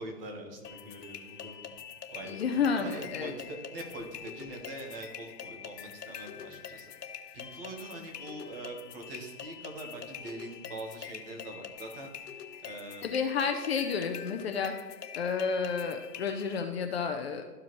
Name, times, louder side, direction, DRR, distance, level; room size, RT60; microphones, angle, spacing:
voice 1, 0.0-1.7 2.1-12.1 12.6-13.1, right 2 dB, 35° right, 3 dB, 1.5 m, -43 dB
sound 1, 0.6-16.6, left 8 dB, 80° left, 0.8 m, -45 dB
voice 2, 2.3-3.3 13.0-14.7 15.1-17.4, left 6 dB, 40° left, 5 dB, 0.6 m, -30 dB
13.0 x 4.9 x 3.1 m, 1.4 s
hypercardioid pair, 150°, 49 cm